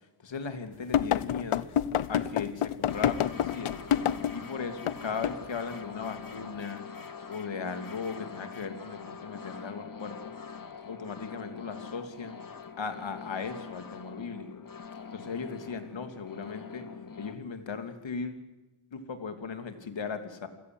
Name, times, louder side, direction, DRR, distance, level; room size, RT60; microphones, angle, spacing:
voice 1, 0.2-1.7 2.1-3.8 4.3-6.8 7.3-10.3 10.8-12.4 12.8-14.5 15.1-16.9 17.2-18.4 18.9-20.5, left 5 dB, 60° left, 8 dB, 3.1 m, -37 dB
sound 1, 0.9-4.4 4.9-5.0 5.2-5.4, left 10 dB, 80° left, 0.9 m, -27 dB
sound 2, 2.9-17.3, left 5 dB, 40° left, 2.4 m, -44 dB
28.0 x 17.0 x 8.0 m, 1.1 s
wide cardioid pair, 95°, 49 cm